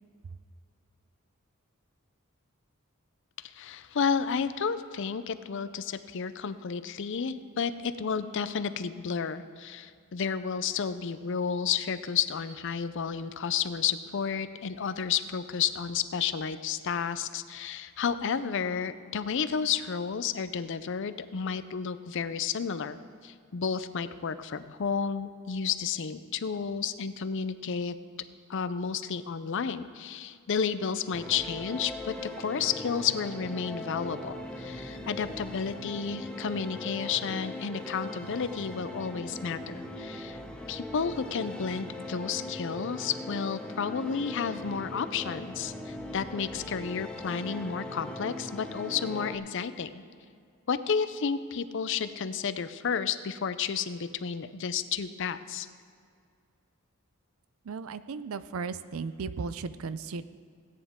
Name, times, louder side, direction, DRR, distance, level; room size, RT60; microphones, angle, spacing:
voice 1, 3.4-27.9 28.5-40.4 40.7-50.0 50.7-55.7, left 6 dB, 60° left, 13 dB, 0.5 m, -31 dB
sound 1, 31.1-49.4, left 1 dB, 5° left, 0.8 m, -40 dB
voice 2, 57.7-60.2, right 4 dB, 70° right, 14 dB, 0.5 m, -35 dB
17.0 x 9.5 x 3.6 m, 2.2 s
head